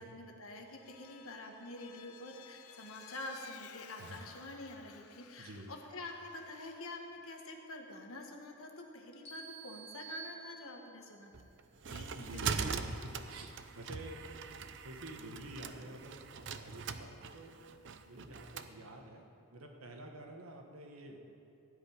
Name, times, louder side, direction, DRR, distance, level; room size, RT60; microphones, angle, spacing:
voice 1, 0.0-11.5 11.9-12.7, left 2 dB, 70° left, 2 dB, 1.5 m, -47 dB
Vehicle, 0.7-7.0, left 8 dB, 90° left, 0.6 m, -57 dB
voice 2, 5.4-5.7 12.1-14.2 14.5-17.5 18.1-21.2, right 1 dB, 70° right, 3 dB, 1.4 m, -49 dB
sound 1, 9.3-11.1, right 7 dB, 30° left, 2.6 m, -50 dB
sound 2, 11.3-18.7, right 5 dB, 55° right, 0.6 m, -41 dB
15.5 x 5.3 x 9.4 m, 2.8 s
head